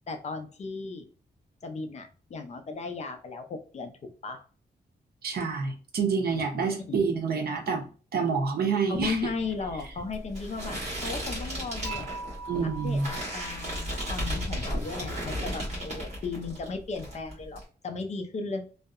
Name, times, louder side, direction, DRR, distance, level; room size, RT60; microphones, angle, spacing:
voice 1, 0.1-1.1 1.6-4.4 6.9-7.0 8.9-12.1 12.6-18.6, left 4 dB, 40° left, 0.4 m, -36 dB
voice 2, 5.2-9.2 12.5-13.1, right 5 dB, 65° right, 0.6 m, -28 dB
sound 1, 8.9-16.7 17.0-17.6, equal, 40° right, 1.3 m, -34 dB
Dishes pots and pans / Chink clink, 11.8-15.0, right 4 dB, 5° right, 0.9 m, -42 dB
2.7 x 2.0 x 2.3 m
wide cardioid pair, 155°, 17 cm